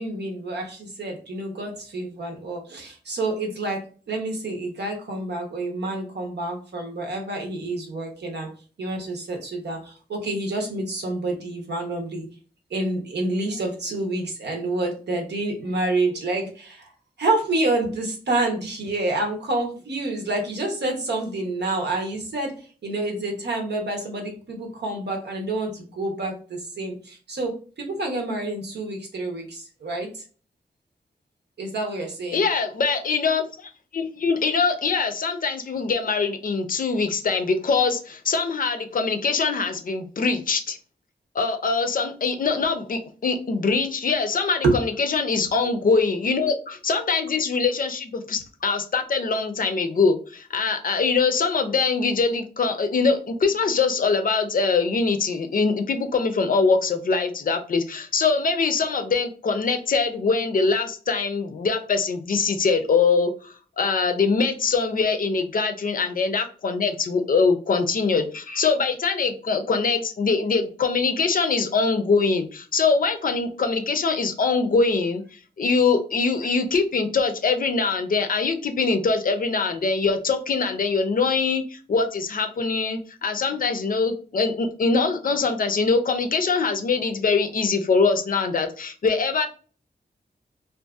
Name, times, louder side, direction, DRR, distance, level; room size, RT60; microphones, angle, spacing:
voice 1, 0.0-8.5 8.8-12.3 12.7-16.9 17.2-30.2 31.6-32.4 44.6-44.7, right 2 dB, 90° right, 2 dB, 0.8 m, -28 dB
voice 2, 32.3-40.8 41.3-89.5, left 4 dB, 55° left, 7 dB, 0.4 m, -23 dB
2.6 x 2.4 x 2.4 m, 0.39 s
wide cardioid pair, 105°, 17 cm